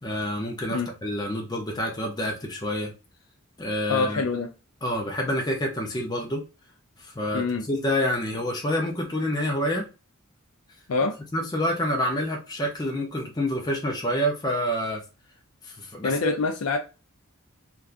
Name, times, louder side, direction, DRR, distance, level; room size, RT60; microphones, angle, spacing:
voice 1, 0.0-2.9 3.6-4.2 4.8-6.4 7.0-9.9 11.3-15.0 15.6-16.4, equal, 20° left, 0.6 m, -28 dB
voice 2, 3.9-4.5 7.3-7.7 10.9-11.1 16.0-16.8, left 3 dB, 70° left, 0.4 m, -25 dB
3.4 x 2.3 x 2.4 m
head